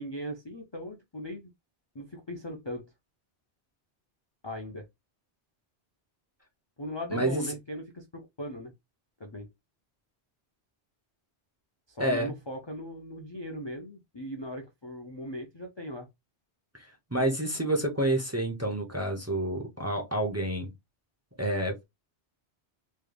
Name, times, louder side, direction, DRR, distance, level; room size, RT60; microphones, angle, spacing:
voice 1, 0.0-1.5 1.9-2.9 4.4-4.9 6.8-8.7 9.2-9.5 11.9-16.1, equal, 30° left, 0.5 m, -38 dB
voice 2, 7.1-7.5 12.0-12.3 16.7-20.7 21.4-21.8, right 1 dB, 15° right, 0.7 m, -29 dB
3.4 x 3.1 x 2.3 m
omnidirectional pair, 1.1 m